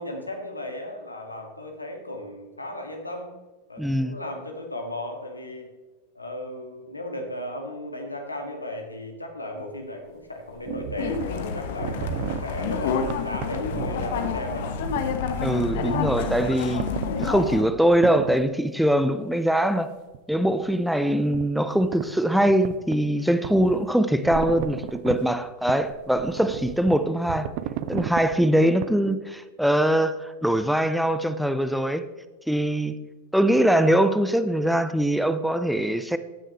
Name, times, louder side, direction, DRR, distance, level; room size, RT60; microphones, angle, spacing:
voice 1, 0.0-3.3 3.7-5.7 6.2-14.7 27.0-27.3 28.9-29.2, left 1 dB, 80° left, 3 dB, 2.0 m, -36 dB
voice 2, 3.8-4.2 15.4-16.9 17.2-19.9 20.3-27.5 27.9-32.1 32.5-33.0 33.3-36.2, right 1 dB, ahead, 11 dB, 0.6 m, -22 dB
sound 1, 9.6-9.7 10.5-11.3 11.7-12.5 13.1-15.1 15.4-15.5 16.8-17.3 17.9-18.5 20.1-20.2 21.3-21.5 21.8-22.1 22.5-23.0 23.3-25.2 25.7-28.3 28.8-28.9, right 12 dB, 45° right, 0.5 m, -33 dB
sound 2, 11.0-17.6, left 5 dB, 55° left, 1.2 m, -28 dB
15.5 x 9.9 x 3.2 m, 1.2 s
figure-of-eight pair, 90°, 0 cm